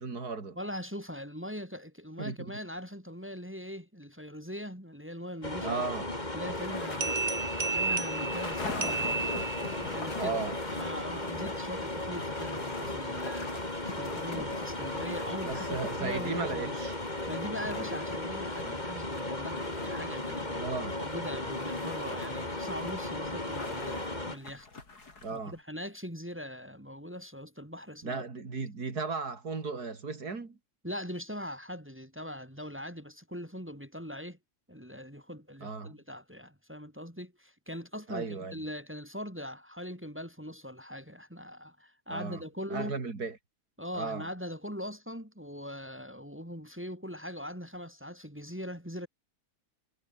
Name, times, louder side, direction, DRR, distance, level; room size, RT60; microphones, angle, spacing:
voice 1, 0.0-0.6 2.2-2.4 5.6-6.1 10.2-10.6 15.4-16.9 20.6-21.0 25.2-25.6 28.0-30.6 35.6-35.9 38.1-38.6 42.1-42.4 42.7-43.4 43.9-44.3, right 4 dB, 70° right, 3.7 m, -35 dB
voice 2, 0.6-5.8 6.3-9.2 9.8-10.4 10.7-13.5 13.9-16.8 17.3-20.7 21.0-24.7 25.3-28.2 30.8-34.4 34.7-43.0 43.8-49.1, equal, 5° right, 5.2 m, -41 dB
sound 1, 5.4-24.4, left 2 dB, 25° left, 4.1 m, -35 dB
sound 2, 5.8-25.6, left 3 dB, 75° left, 4.4 m, -45 dB
sound 3, 7.0-9.9, right 4 dB, 50° right, 2.5 m, -33 dB
omnidirectional pair, 1.7 m